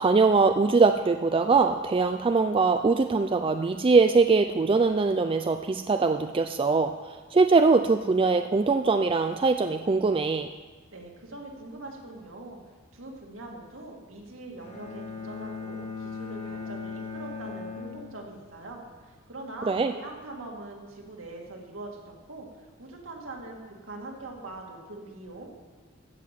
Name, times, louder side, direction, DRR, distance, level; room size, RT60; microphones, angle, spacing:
voice 1, 0.0-6.9 7.3-10.5 19.7-19.9, right 4 dB, 25° right, 7 dB, 0.4 m, -22 dB
voice 2, 10.9-12.6 12.9-25.5, right 2 dB, 70° right, 0 dB, 2.3 m, -42 dB
Bowed string instrument, 14.6-18.7, left 5 dB, 35° left, 1.9 m, -38 dB
15.0 x 6.0 x 7.7 m, 1.3 s
head